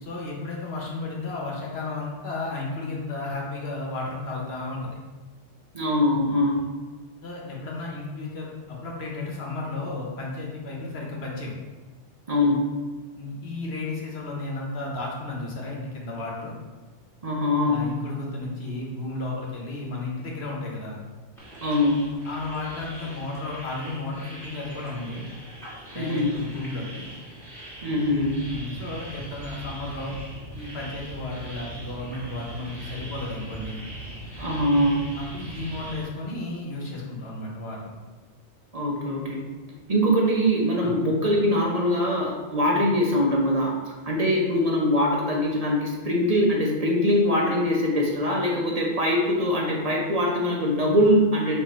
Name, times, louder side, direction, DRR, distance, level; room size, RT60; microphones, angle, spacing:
voice 1, 0.0-4.9 7.2-11.5 13.2-16.5 17.6-21.0 22.2-25.2 25.9-27.0 28.4-30.2 30.5-33.8 35.1-37.9 40.8-41.0, left 2 dB, 60° left, -2 dB, 1.2 m, -33 dB
voice 2, 5.7-6.6 12.3-12.7 17.2-17.9 21.6-22.0 25.9-26.3 27.8-28.4 34.4-35.1 38.7-39.4 39.9-43.7 44.1-51.6, left 1 dB, 40° right, -2 dB, 0.6 m, -22 dB
sound 1, 21.4-36.0, right 1 dB, ahead, 1.1 m, -41 dB
4.5 x 2.6 x 4.2 m, 1.3 s
omnidirectional pair, 1.2 m